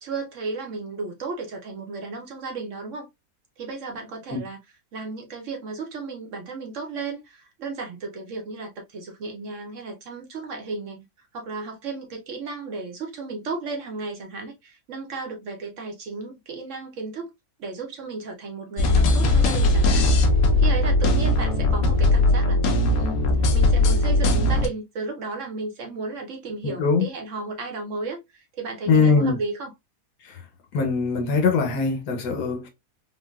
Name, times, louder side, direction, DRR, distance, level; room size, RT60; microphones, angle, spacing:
voice 1, 0.0-3.1 3.6-4.6 4.9-11.0 11.3-17.3 17.6-20.1 20.6-22.6 23.0-23.3 23.5-29.7, right 3 dB, 60° right, 0.9 m, -34 dB
sound 1, 18.8-24.7, left 2 dB, 70° left, 0.8 m, -19 dB
voice 2, 26.6-27.1 28.9-29.4 30.2-30.4 30.7-32.7, left 4 dB, 85° left, 1.4 m, -22 dB
3.6 x 2.2 x 2.2 m
omnidirectional pair, 1.7 m